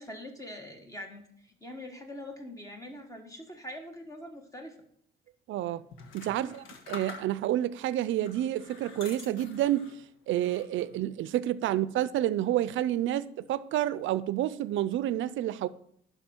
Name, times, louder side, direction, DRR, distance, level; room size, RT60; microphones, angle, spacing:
voice 1, 0.0-4.7 6.3-6.6, left 1 dB, 15° left, 1.6 m, -43 dB
voice 2, 5.5-5.8 6.1-9.9 10.3-15.7, right 13 dB, 80° right, 0.5 m, -29 dB
sound 1, 5.9-7.6 8.2-10.0 10.4-11.0, left 5 dB, 85° left, 1.3 m, -47 dB
11.5 x 5.6 x 4.4 m
cardioid pair, 90°, 20 cm